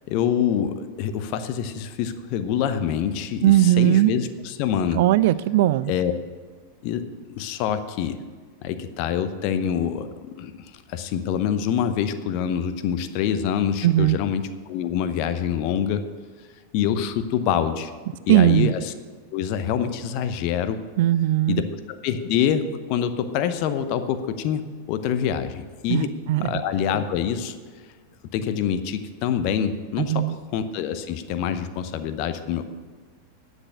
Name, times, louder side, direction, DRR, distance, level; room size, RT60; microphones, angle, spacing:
voice 1, 0.1-5.0 5.9-6.1 6.8-8.2 8.6-16.0 16.7-17.9 18.3-18.9 19.3-20.8 21.5-21.6 22.0-26.1 26.4-27.6 28.3-32.6, left 8 dB, 45° left, 10 dB, 0.8 m, -26 dB
voice 2, 3.4-4.1 4.9-5.9 13.8-14.2 18.3-18.7 21.0-21.6 25.9-26.6 30.0-30.4, right 14 dB, 50° right, 18 dB, 0.3 m, -19 dB
9.8 x 6.3 x 8.8 m, 1.5 s
figure-of-eight pair, 90°, 0 cm